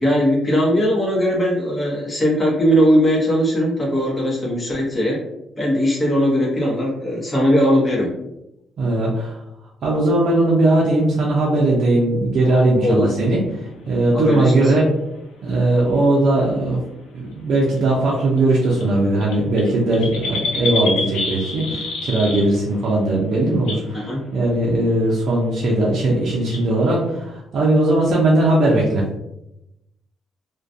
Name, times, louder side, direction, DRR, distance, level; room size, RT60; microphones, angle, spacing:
voice 1, 0.0-5.2 5.6-8.1 12.8-13.1 14.1-14.7 23.9-24.2, equal, 20° left, -4 dB, 0.9 m, -19 dB
voice 2, 8.8-9.4 9.8-13.4 13.9-14.9 15.4-16.8 17.1-29.0, right 2 dB, 65° right, -4 dB, 0.5 m, -19 dB
sound 1, 13.2-14.8 15.8-15.9 16.1-16.4 17.5-17.8 18.1-18.2 18.4-18.5 18.6-22.8 23.1-23.2 23.5-23.9 24.5-24.8 25.2-25.3 25.6-25.7 25.9-26.0 26.5-26.6, left 3 dB, 90° left, 0.5 m, -28 dB
2.3 x 2.2 x 2.6 m, 0.88 s
cardioid pair, 90°, 0 cm